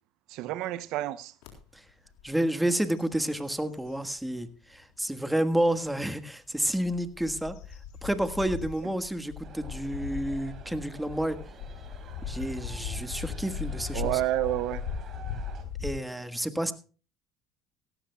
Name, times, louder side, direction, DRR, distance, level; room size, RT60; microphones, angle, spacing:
voice 1, 0.3-1.3 13.9-14.8, right 14 dB, 75° right, 0.6 m, -29 dB
sound 1, 1.4-1.5 2.1-2.3 2.6-4.1 4.7-4.8 6.6-15.9, left 6 dB, 80° left, 3.7 m, -38 dB
voice 2, 2.2-7.6 8.0-11.4 12.3-14.1 15.8-16.7, right 1 dB, 5° right, 1.5 m, -30 dB
sound 2, 9.4-15.6, right 6 dB, 50° right, 3.5 m, -50 dB
16.5 x 15.0 x 2.3 m
supercardioid pair, 85°, 0 cm